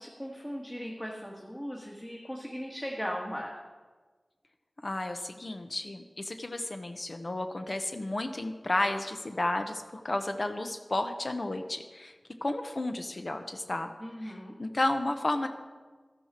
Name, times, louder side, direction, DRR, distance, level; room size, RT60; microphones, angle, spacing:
voice 1, 0.0-3.5 14.0-14.6, equal, 15° left, -1 dB, 1.7 m, -38 dB
voice 2, 4.8-12.1 12.4-13.9 14.2-15.5, left 2 dB, 55° left, 6 dB, 0.8 m, -32 dB
12.5 x 10.5 x 4.4 m, 1.4 s
wide cardioid pair, 45°, 0 cm